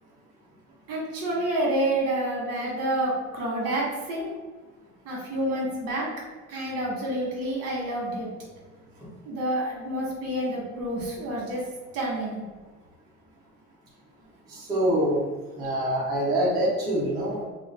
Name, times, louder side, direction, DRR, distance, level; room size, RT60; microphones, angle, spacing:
voice 1, 0.9-4.3 5.0-6.1 6.5-8.3 9.2-11.6 11.9-12.4, right 1 dB, 55° right, -4 dB, 1.1 m, -28 dB
voice 2, 14.5-15.2 15.6-17.4, right 1 dB, 15° right, -8 dB, 0.5 m, -25 dB
2.5 x 2.3 x 3.3 m, 1.3 s
cardioid pair, 175°, 29 cm